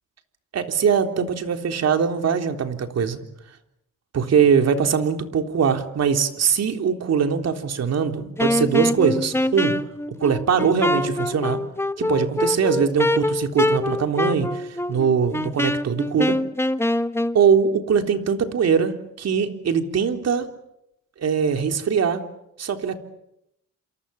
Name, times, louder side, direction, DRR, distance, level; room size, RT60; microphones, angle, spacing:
voice 1, 0.5-3.2 4.1-9.8 10.2-11.6 12.0-16.4 17.3-20.5 21.2-22.2 22.6-23.0, right 6 dB, 55° right, 6 dB, 3.7 m, -22 dB
Wind instrument woodwind instrument, 8.4-17.4, left 1 dB, 10° left, 1.5 m, -24 dB
28.5 x 28.0 x 7.1 m, 0.80 s
cardioid pair, 90°, 30 cm